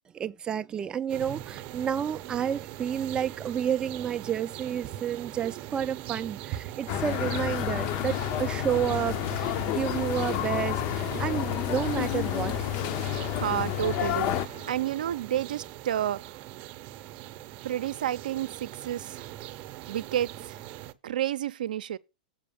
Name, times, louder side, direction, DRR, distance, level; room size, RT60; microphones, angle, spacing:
voice 1, 0.1-12.7, right 9 dB, 20° right, 0.4 m, -30 dB
sound 1, 1.1-20.9, right 14 dB, 40° right, 0.7 m, -41 dB
sound 2, 6.9-14.5, left 13 dB, 45° left, 0.6 m, -30 dB
sound 3, 9.0-14.8, left 3 dB, 80° left, 5.1 m, -53 dB
voice 2, 13.3-16.4 17.6-19.3 19.9-20.6 21.0-22.0, right 11 dB, 75° right, 0.6 m, -30 dB
7.8 x 4.8 x 6.9 m
hypercardioid pair, 120°, 5 cm